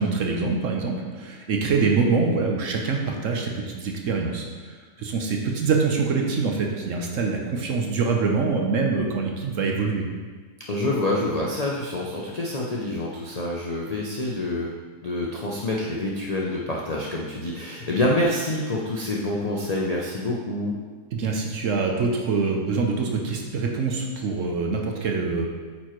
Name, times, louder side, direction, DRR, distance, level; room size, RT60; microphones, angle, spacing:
voice 1, 0.0-10.1 21.1-25.5, right 4 dB, 60° right, 1 dB, 1.0 m, -25 dB
voice 2, 10.7-14.7 15.0-20.7, left 1 dB, 55° left, -3 dB, 0.4 m, -27 dB
8.6 x 4.4 x 3.1 m, 1.4 s
omnidirectional pair, 1.7 m